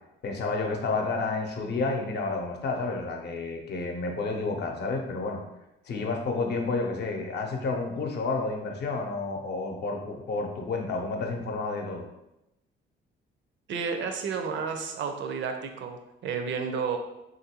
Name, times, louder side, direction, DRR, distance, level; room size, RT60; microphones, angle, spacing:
voice 1, 0.2-5.4 5.8-12.1, left 3 dB, 60° left, 2 dB, 0.6 m, -30 dB
voice 2, 13.7-17.0, right 6 dB, 70° right, 5 dB, 0.5 m, -31 dB
3.2 x 2.5 x 2.8 m, 0.89 s
cardioid pair, 90°, 20 cm